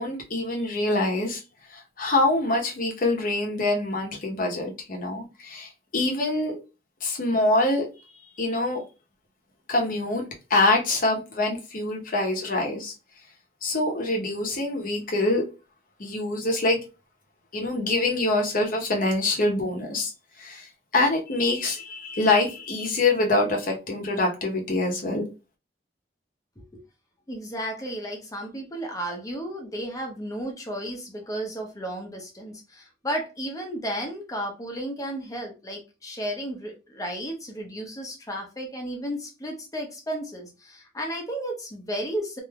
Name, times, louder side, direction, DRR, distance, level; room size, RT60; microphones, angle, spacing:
voice 1, 0.0-1.4 1.7-6.6 7.0-7.9 8.4-8.8 9.7-10.2 10.5-12.9 13.6-15.4 16.0-16.8 17.5-20.1 20.4-25.2, left 2 dB, 50° left, 0.8 m, -25 dB
voice 2, 27.3-42.4, equal, 20° left, 0.8 m, -33 dB
3.3 x 2.6 x 2.2 m
head